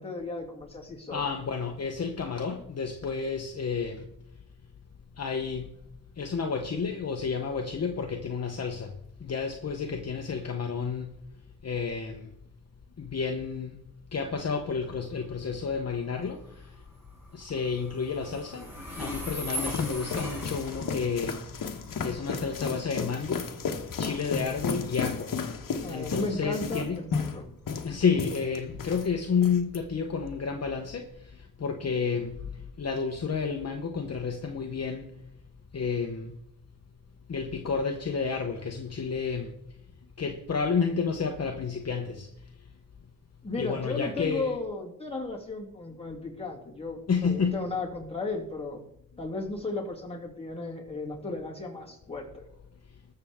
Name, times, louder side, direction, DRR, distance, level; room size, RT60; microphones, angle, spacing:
voice 1, 0.0-1.2 25.8-27.5 43.4-48.8 49.2-52.4, left 3 dB, 15° left, 2.7 m, -35 dB
voice 2, 1.1-4.1 5.2-5.7 6.2-8.9 9.2-11.1 11.6-12.3 13.0-13.8 14.1-16.7 17.3-18.7 19.0-21.4 22.0-23.5 24.0-25.3 25.9-27.0 27.8-35.1 35.7-36.4 37.3-39.5 40.2-42.3 43.6-44.5 47.1-47.6, left 5 dB, 50° left, 1.0 m, -30 dB
Train, 14.6-29.3, equal, 5° right, 5.5 m, -42 dB
sound 1, 19.2-29.1 29.4-29.8, left 5 dB, 70° left, 1.2 m, -34 dB
20.5 x 6.9 x 3.6 m
wide cardioid pair, 115°, 33 cm